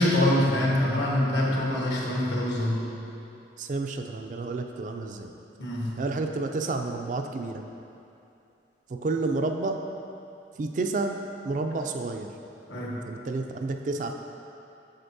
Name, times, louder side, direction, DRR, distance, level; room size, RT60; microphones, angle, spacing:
voice 1, 0.0-2.9 5.6-6.0 12.7-13.0, left 1 dB, 75° left, -4 dB, 1.3 m, -25 dB
voice 2, 3.6-5.3 6.0-7.6 8.9-9.8 10.6-11.2 11.4-12.3 13.1-14.1, right 3 dB, 45° right, 4 dB, 0.3 m, -30 dB
7.8 x 6.4 x 2.7 m, 2.7 s
head